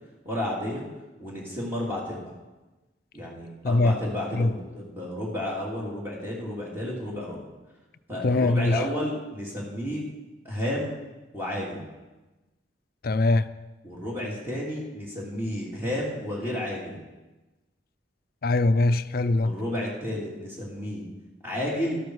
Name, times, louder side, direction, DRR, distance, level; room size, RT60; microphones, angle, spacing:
voice 1, 0.2-0.8 1.2-2.3 3.1-7.4 8.1-10.1 10.4-11.0 11.3-11.8 13.8-17.0 19.4-21.0 21.4-22.0, left 1 dB, 15° right, 2.8 m, -31 dB
voice 2, 3.6-4.0 4.3-4.5 8.2-8.8 13.0-13.5 18.4-19.5, left 2 dB, 55° left, 0.5 m, -22 dB
13.0 x 12.5 x 4.7 m
head